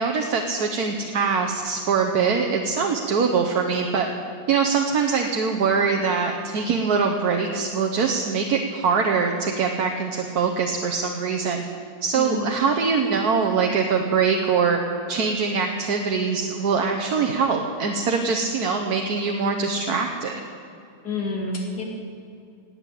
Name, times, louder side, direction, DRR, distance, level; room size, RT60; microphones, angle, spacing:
voice 1, 0.0-4.1 4.5-11.6 12.0-14.8 15.1-20.4, right 5 dB, 70° right, 2 dB, 1.5 m, -23 dB
voice 2, 12.1-12.5 21.0-21.9, left 2 dB, 85° left, -1 dB, 3.3 m, -28 dB
18.0 x 8.8 x 8.4 m, 2.5 s
omnidirectional pair, 1.7 m